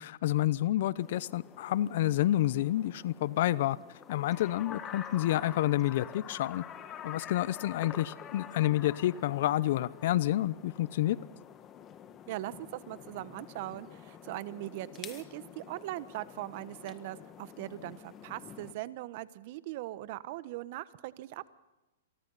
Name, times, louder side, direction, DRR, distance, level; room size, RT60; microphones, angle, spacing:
voice 1, 0.0-3.8 4.1-6.6 7.0-11.2, left 14 dB, 60° left, 20 dB, 0.7 m, -29 dB
sound 1, 1.0-18.7, left 9 dB, 25° left, 1.6 m, -48 dB
voice 2, 12.3-21.5, right 16 dB, 50° right, 15 dB, 1.2 m, -40 dB
28.5 x 24.0 x 4.1 m, 1.0 s
hypercardioid pair, 125°, 0 cm